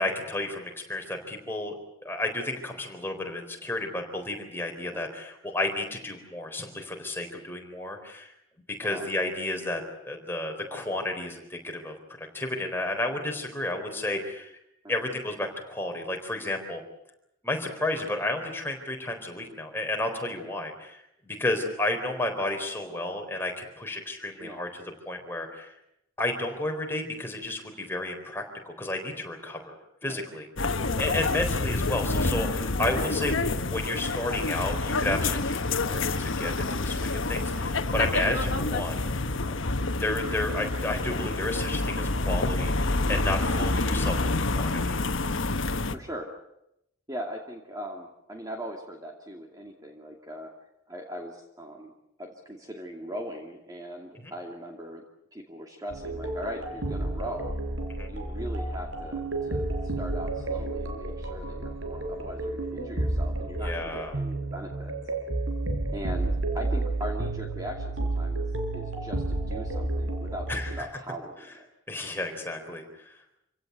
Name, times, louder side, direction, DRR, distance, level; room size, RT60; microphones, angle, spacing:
voice 1, 0.0-8.3 8.8-14.5 14.9-16.8 17.4-25.7 26.2-29.8 30.0-30.5 30.9-33.4 33.7-39.0 40.0-44.3 44.6-45.0 54.2-54.3 57.9-58.1 63.6-64.1 70.5-70.7 71.9-73.2, left 2 dB, 10° left, 3 dB, 4.0 m, -32 dB
sound 1, 30.6-46.0, left 2 dB, 75° left, 1.3 m, -28 dB
voice 2, 45.9-46.3 47.1-50.5 50.9-51.9 52.2-55.0 55.3-57.5 58.1-64.9 65.9-68.5 68.7-71.7, equal, 20° right, 1 dB, 2.5 m, -40 dB
sound 2, 55.9-70.8, right 2 dB, 80° right, 4.4 m, -31 dB
27.5 x 17.0 x 9.4 m, 0.83 s
head